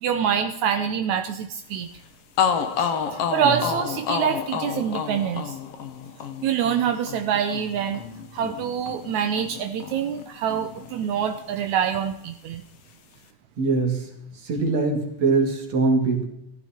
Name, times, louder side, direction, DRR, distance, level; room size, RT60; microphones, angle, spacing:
voice 1, 0.0-1.9 2.8-5.6 6.4-8.0 8.3-12.6, right 8 dB, 75° right, 7 dB, 2.0 m, -25 dB
sound 1, 2.0-2.1 2.4-10.2 10.5-11.6, left 7 dB, 60° left, 1.9 m, -30 dB
voice 2, 13.6-14.1 14.4-16.2, right 3 dB, 55° right, 2 dB, 3.6 m, -22 dB
15.0 x 14.5 x 4.4 m, 0.81 s
omnidirectional pair, 3.6 m